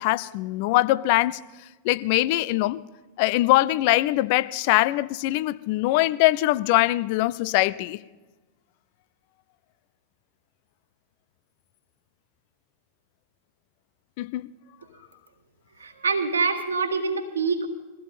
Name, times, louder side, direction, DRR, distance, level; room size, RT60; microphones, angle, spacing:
voice 1, 0.0-1.4 1.8-2.8 3.2-8.0 14.2-14.5, left 18 dB, 45° left, 0.5 m, -22 dB
voice 2, 15.8-17.7, right 4 dB, 70° right, 1.7 m, -25 dB
22.5 x 15.0 x 4.2 m
figure-of-eight pair, 90°, 0 cm